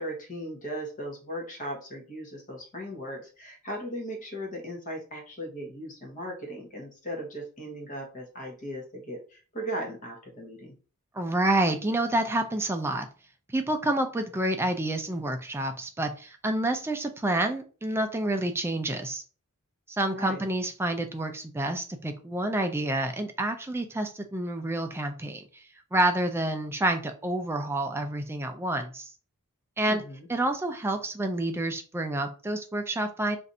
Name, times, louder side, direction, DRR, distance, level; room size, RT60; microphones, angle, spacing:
voice 1, 0.0-10.7 20.1-20.4 29.9-30.3, equal, 35° left, 1 dB, 0.9 m, -37 dB
voice 2, 11.1-13.1 13.5-19.2 19.9-25.6 25.9-29.1 29.8-30.0 30.3-33.4, right 1 dB, 10° right, 6 dB, 0.3 m, -28 dB
2.6 x 2.5 x 4.2 m, 0.37 s
head